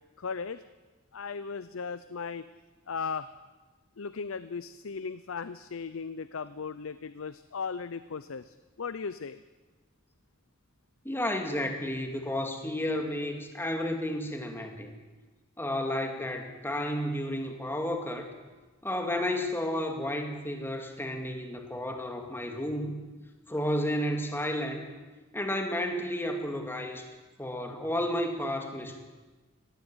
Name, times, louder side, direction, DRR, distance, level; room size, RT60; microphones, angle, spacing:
voice 1, 0.2-0.6 1.1-2.5 2.9-3.3 4.0-9.4, left 5 dB, 80° left, 14 dB, 0.6 m, -37 dB
voice 2, 11.0-14.9 15.6-18.3 18.8-23.1 23.5-24.9 25.3-27.1 27.4-29.0, left 1 dB, 10° left, 4 dB, 2.4 m, -32 dB
18.5 x 16.0 x 9.0 m, 1.3 s
head